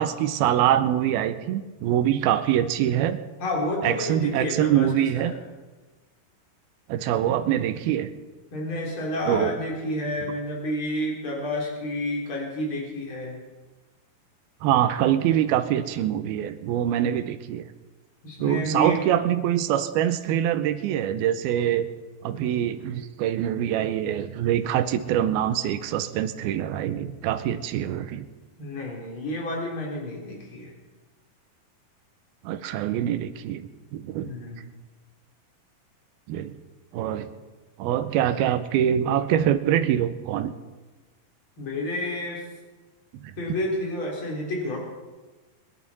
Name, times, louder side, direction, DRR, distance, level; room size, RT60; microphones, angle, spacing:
voice 1, 0.0-3.2 3.8-5.3 6.9-8.1 9.3-9.6 14.6-17.7 18.4-21.9 22.2-28.3 32.4-34.3 36.3-36.6 36.9-37.3 37.8-40.5 43.1-43.3, right 11 dB, 85° right, 11 dB, 2.6 m, -24 dB
voice 2, 3.4-5.4 8.5-13.4 18.2-19.0 28.6-30.7 34.2-34.6 41.6-42.4 43.4-44.8, left 1 dB, 35° left, -2 dB, 3.9 m, -30 dB
23.0 x 11.5 x 4.2 m, 1.3 s
omnidirectional pair, 4.3 m